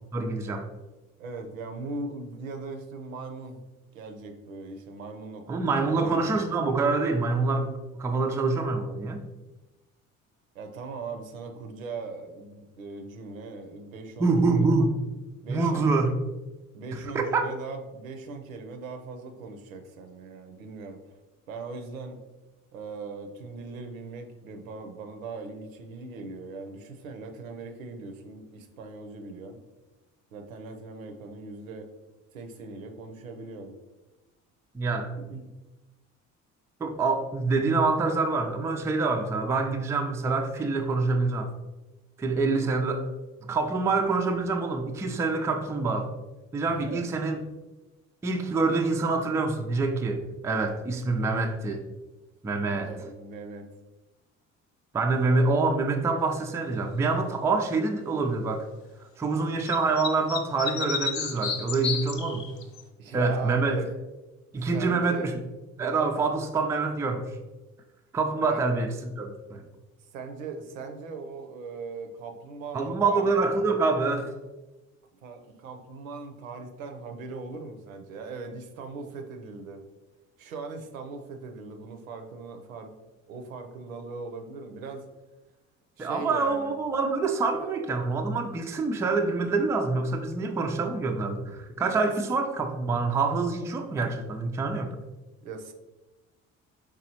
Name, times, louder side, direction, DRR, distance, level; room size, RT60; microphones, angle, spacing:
voice 1, 0.1-0.7 5.5-9.2 14.2-15.0 15.5-16.1 16.9-17.5 34.7-35.1 36.8-41.5 42.2-43.1 43.4-46.1 46.5-47.4 48.2-51.8 52.4-52.9 54.9-58.7 59.2-62.5 63.1-63.8 64.5-65.3 65.8-67.3 68.1-68.9 69.2-69.6 72.7-74.3 86.0-94.9, right 3 dB, 10° right, 4 dB, 0.3 m, -26 dB
voice 2, 1.2-3.6 3.9-6.4 10.5-14.7 15.4-16.0 16.7-21.0 21.5-22.2 22.7-29.6 30.3-31.9 32.3-33.7 35.3-35.5 46.7-47.1 52.6-53.7 63.0-63.9 64.5-65.3 68.5-68.6 70.0-73.3 75.2-79.8 80.4-82.9 83.3-85.1 86.0-86.8 87.5-87.7 95.4-95.7, right 3 dB, 80° right, 5 dB, 0.6 m, -39 dB
sound 1, 59.6-62.8, left 7 dB, 45° left, 0.7 m, -31 dB
4.7 x 3.5 x 2.8 m, 1.1 s
figure-of-eight pair, 50°, 41 cm